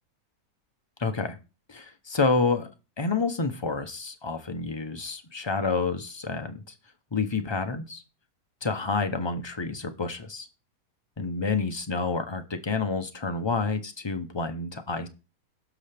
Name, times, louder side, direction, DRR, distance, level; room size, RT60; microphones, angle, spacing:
voice 1, 1.0-1.4 1.7-2.7 3.0-6.6 7.1-8.0 8.6-10.5 11.2-15.1, left 4 dB, 30° left, 7 dB, 0.5 m, -29 dB
16.5 x 6.2 x 3.4 m, 0.32 s
omnidirectional pair, 1.7 m